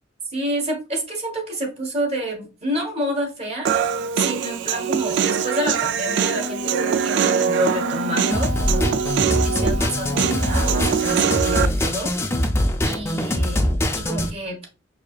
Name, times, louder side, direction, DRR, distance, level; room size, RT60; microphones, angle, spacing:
voice 1, 0.3-3.7 4.2-8.9 9.4-12.1 12.8-14.6, equal, 35° right, 2 dB, 1.1 m, -29 dB
Human voice, 3.7-11.7, right 7 dB, 60° right, 0.3 m, -23 dB
Wind instrument woodwind instrument, 6.1-11.3, equal, 80° right, 0.9 m, -31 dB
sound 1, 8.3-14.3, left 1 dB, 15° left, 0.4 m, -23 dB
4.8 x 2.7 x 2.3 m, 0.32 s
head